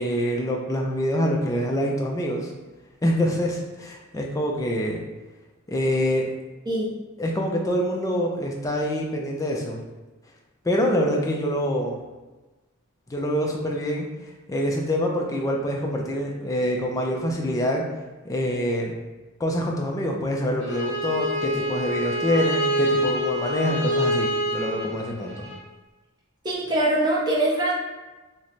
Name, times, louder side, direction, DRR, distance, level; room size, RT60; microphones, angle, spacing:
voice 1, 0.0-2.5 3.0-5.0 5.7-6.2 7.2-9.8 10.6-12.0 13.1-17.8 18.2-19.0 19.4-25.5, equal, 15° left, 0 dB, 0.4 m, -25 dB
Bowed string instrument, 20.6-25.6, left 1 dB, 55° left, 0.7 m, -26 dB
voice 2, 26.4-27.7, right 1 dB, 20° right, -4 dB, 0.6 m, -23 dB
3.0 x 2.1 x 3.9 m, 1.2 s
head